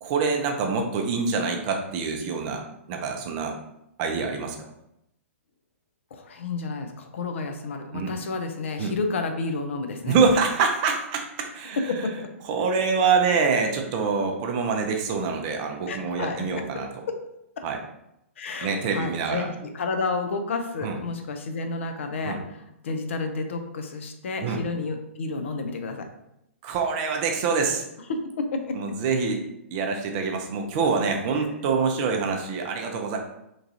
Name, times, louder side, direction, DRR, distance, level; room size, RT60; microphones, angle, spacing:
voice 1, 0.0-3.6 4.0-4.6 7.9-8.2 8.8-8.9 10.1-11.8 12.5-16.9 17.6-17.8 18.6-19.5 20.8-21.0 22.2-22.4 24.4-24.6 26.6-27.8 28.8-29.4 29.7-33.2, right 5 dB, 35° right, 3 dB, 0.4 m, -25 dB
voice 2, 6.1-10.2 11.9-12.3 15.9-16.4 16.7-17.2 17.6-17.7 18.4-26.1 28.1-28.8 31.3-31.4, left 3 dB, 60° left, 6 dB, 0.4 m, -31 dB
3.0 x 2.3 x 2.6 m, 0.82 s
figure-of-eight pair, 115°, 7 cm